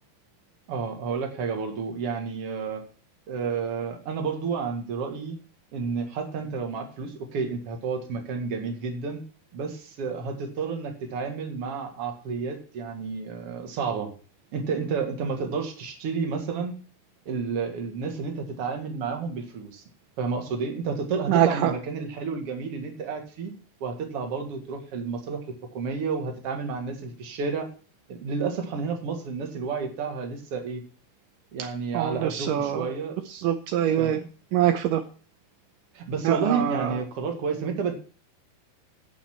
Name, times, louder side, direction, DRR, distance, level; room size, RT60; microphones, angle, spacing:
voice 1, 0.7-2.8 3.3-5.4 5.7-9.2 9.5-14.1 14.5-16.7 17.3-19.8 20.2-23.5 23.8-27.7 28.2-30.8 31.5-33.2 34.0-34.2 35.9-37.9, right 5 dB, 45° right, 4 dB, 2.2 m, -30 dB
voice 2, 21.3-21.7 31.6-31.7 31.9-32.9 33.3-34.2 34.5-35.0 36.2-37.0, right 11 dB, 85° right, 8 dB, 1.9 m, -24 dB
17.0 x 5.8 x 4.5 m, 0.39 s
omnidirectional pair, 4.6 m